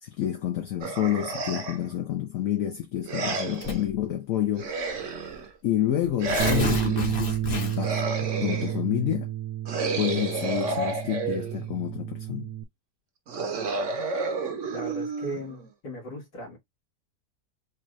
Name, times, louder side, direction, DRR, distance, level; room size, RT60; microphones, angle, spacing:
voice 1, 0.0-4.7 5.6-9.3 10.0-12.5, left 11 dB, 65° left, 1.0 m, -29 dB
sound 1, 0.8-1.9 3.1-3.8 4.6-5.5 6.2-7.1 7.8-8.8 9.7-11.7 13.3-15.7, right 3 dB, 55° right, 1.1 m, -31 dB
Tearing, 3.6-4.0 4.9-5.0 5.3-5.4 6.0-8.0, left 4 dB, 40° left, 1.0 m, -30 dB
Bass guitar, 6.4-12.6, right 12 dB, 75° right, 1.1 m, -31 dB
voice 2, 14.7-16.6, right 1 dB, 85° left, 2.3 m, -37 dB
4.4 x 2.5 x 3.1 m
omnidirectional pair, 1.8 m